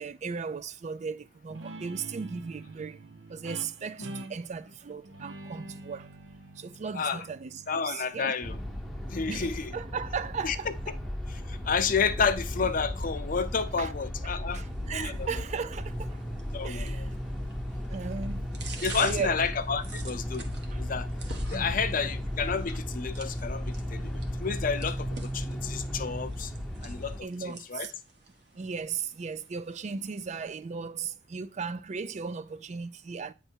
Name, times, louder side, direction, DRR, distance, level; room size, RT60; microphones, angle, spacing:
voice 1, 0.0-3.0 3.3-6.1 6.6-8.3 9.3-10.7 13.8-13.9 14.5-16.2 16.6-17.2 17.9-18.5 19.0-19.4 20.7-20.8 21.5-21.8 27.2-27.9 28.5-33.3, right 5 dB, 40° right, 0.4 m, -36 dB
Guitar, 1.5-8.7, right 2 dB, 80° right, 0.8 m, -45 dB
voice 2, 6.9-7.3 7.7-8.6 9.1-9.8 10.4-10.6 11.3-15.3 16.5-17.1 18.8-20.4 20.8-21.1 21.5-26.5 26.8-27.9, left 5 dB, 45° left, 0.6 m, -31 dB
sound 1, 8.4-27.2, equal, ahead, 0.7 m, -35 dB
sound 2, 14.5-30.5, right 4 dB, 65° right, 1.1 m, -49 dB
8.9 x 3.3 x 4.4 m
head